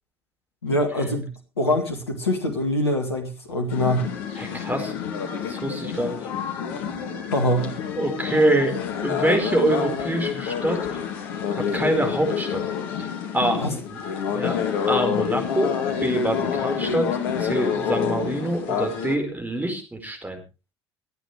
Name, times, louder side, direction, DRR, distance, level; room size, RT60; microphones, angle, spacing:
voice 1, 0.6-1.3 1.6-4.1 7.3-7.7 13.6-13.7, left 1 dB, 80° left, 3 dB, 2.1 m, -24 dB
sound 1, 3.7-19.2, left 7 dB, 65° left, 2.2 m, -28 dB
voice 2, 4.4-4.9 5.5-6.2 8.0-8.8 9.0-11.0 11.6-12.6 13.3-14.0 14.3-14.6 14.9-20.4, right 1 dB, 10° right, 4 dB, 4.7 m, -25 dB
25.5 x 9.0 x 3.3 m, 0.29 s
figure-of-eight pair, 60°, 14 cm